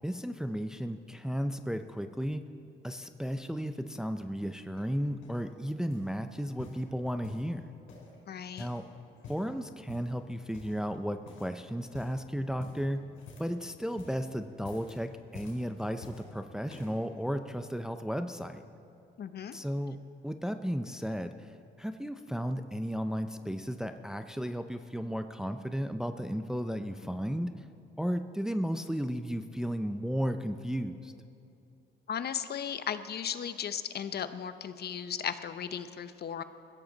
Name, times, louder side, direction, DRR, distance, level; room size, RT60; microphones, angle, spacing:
voice 1, 0.0-2.4 2.8-7.6 8.6-8.8 9.3-13.0 13.4-18.6 19.5-20.0 20.2-27.6 28.0-31.1, equal, 5° right, 8 dB, 0.6 m, -34 dB
sound 1, 4.7-5.5 5.9-6.2 6.6-7.5 7.9-8.9 9.1-9.5 9.9-10.2 10.5-11.0 11.3-11.6 11.9-12.2 12.6-13.6 13.9-14.3 14.6-15.0 15.3-16.3 16.7-17.0 17.7-17.8, left 4 dB, 80° left, 5.0 m, -49 dB
voice 2, 8.3-8.7 19.2-19.6 32.1-36.4, left 8 dB, 55° left, 11 dB, 0.9 m, -36 dB
21.5 x 15.5 x 4.0 m, 2.6 s
cardioid pair, 90°, 20 cm